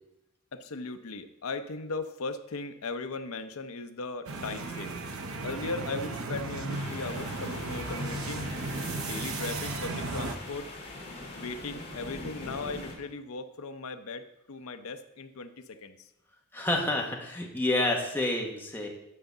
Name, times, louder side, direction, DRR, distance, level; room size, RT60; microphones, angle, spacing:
voice 1, 0.5-5.0 5.4-8.5 9.0-10.7 11.4-16.1, left 3 dB, 70° left, 8 dB, 0.7 m, -38 dB
sound 1, 4.3-10.3, right 3 dB, 70° right, 0.8 m, -35 dB
sound 2, 6.7-12.9, left 2 dB, 30° left, 2.4 m, -42 dB
voice 2, 16.5-18.9, left 1 dB, 10° left, -1 dB, 1.2 m, -29 dB
9.5 x 3.9 x 6.6 m, 0.87 s
head